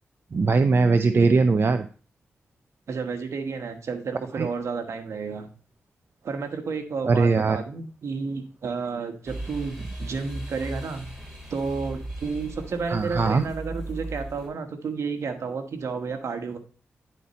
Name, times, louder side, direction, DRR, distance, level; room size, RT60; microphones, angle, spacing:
voice 1, 0.3-1.9 4.4-4.5 7.1-7.6 12.9-13.4, right 4 dB, 50° right, 9 dB, 0.5 m, -20 dB
voice 2, 2.9-5.5 6.2-11.1 11.5-16.6, right 5 dB, 70° right, 6 dB, 1.3 m, -31 dB
sound 1, 9.3-14.5, right 1 dB, 5° right, 3.6 m, -37 dB
10.0 x 4.3 x 4.2 m, 0.39 s
cardioid pair, 50°, 5 cm